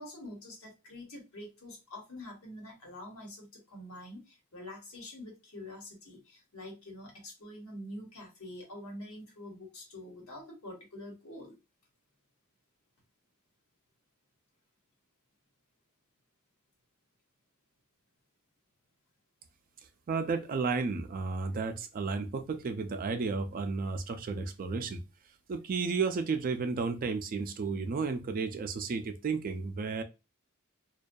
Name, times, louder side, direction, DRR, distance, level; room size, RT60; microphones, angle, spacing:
voice 1, 0.0-11.6, left 1 dB, 85° left, 1.1 m, -46 dB
voice 2, 20.1-25.0 25.5-30.0, right 4 dB, 40° right, 0.3 m, -32 dB
2.6 x 2.2 x 2.2 m
head